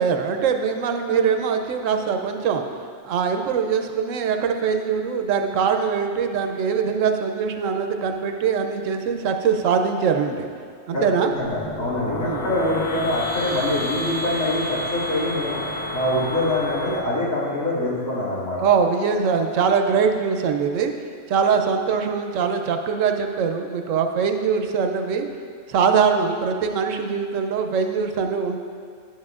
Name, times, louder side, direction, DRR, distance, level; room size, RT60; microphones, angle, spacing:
voice 1, 0.0-2.6 3.0-10.5 10.9-11.3 12.2-12.5 18.6-20.9 21.3-25.3 25.7-28.6, right 6 dB, 75° right, 5 dB, 0.9 m, -22 dB
voice 2, 11.3-15.6 15.9-18.6, left 1 dB, 80° left, -9 dB, 2.5 m, -24 dB
sound 1, 11.3-17.0, equal, 25° left, 0.5 m, -30 dB
10.0 x 7.6 x 2.4 m, 2.2 s
omnidirectional pair, 1.4 m